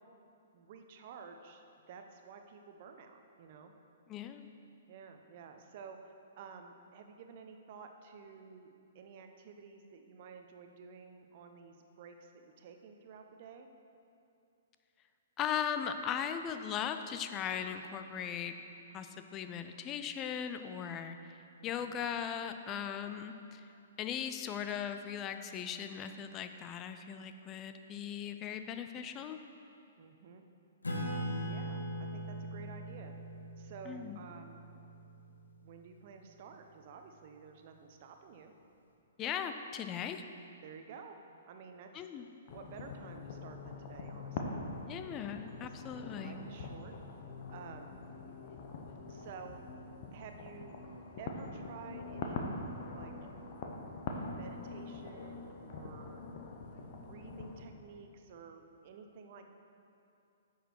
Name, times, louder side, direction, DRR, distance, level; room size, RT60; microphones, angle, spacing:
voice 1, 0.5-3.7 4.9-13.7 21.6-22.0 30.0-30.4 31.5-33.1 33.6-34.6 35.6-38.5 40.6-41.1 41.4-42.1 42.5-44.6 45.6-45.7 46.2-46.9 47.5-47.9 49.1-49.6 50.1-50.8 51.2-53.1 54.3-56.2 57.0-59.5, right 6 dB, 40° right, 5 dB, 0.8 m, -52 dB
voice 2, 4.1-4.5 15.4-18.5 18.9-21.4 21.6-23.6 24.0-29.4 33.9-34.2 39.2-40.2 41.9-42.3 44.9-46.4, left 8 dB, 25° left, 8 dB, 0.5 m, -38 dB
Acoustic guitar / Strum, 30.8-35.8, equal, 75° left, 1.2 m, -41 dB
sound 1, 42.5-57.7, left 3 dB, 40° left, 0.9 m, -44 dB
10.0 x 6.6 x 4.5 m, 2.7 s
figure-of-eight pair, 115°, 0 cm